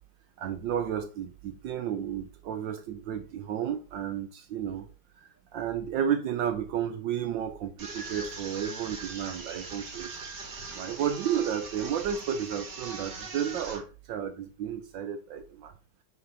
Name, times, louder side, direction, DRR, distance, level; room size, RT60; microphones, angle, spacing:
voice 1, 0.4-4.9 5.2-10.1 10.7-15.7, right 9 dB, 70° right, 1.2 m, -32 dB
sound 1, 7.8-13.8, right 4 dB, 50° right, 2.0 m, -41 dB
6.3 x 4.4 x 5.4 m
omnidirectional pair, 2.4 m